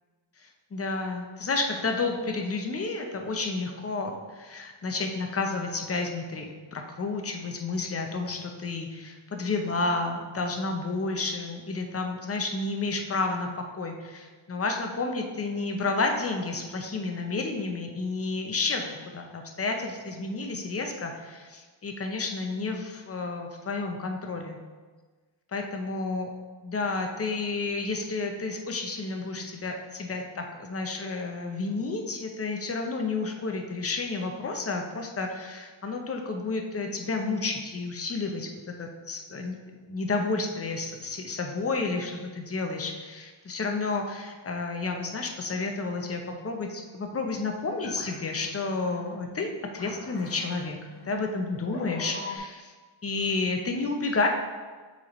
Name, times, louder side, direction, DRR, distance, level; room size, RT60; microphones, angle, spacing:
voice 1, 0.4-24.6 25.5-26.3 26.6-38.5 38.8-39.6 39.8-50.8 51.1-52.7 53.0-54.3, left 3 dB, 30° left, 3 dB, 0.7 m, -31 dB
sound 1, 47.2-52.4, left 3 dB, 55° left, 1.3 m, -44 dB
7.2 x 4.2 x 3.1 m, 1.4 s
cardioid pair, 110°, 48 cm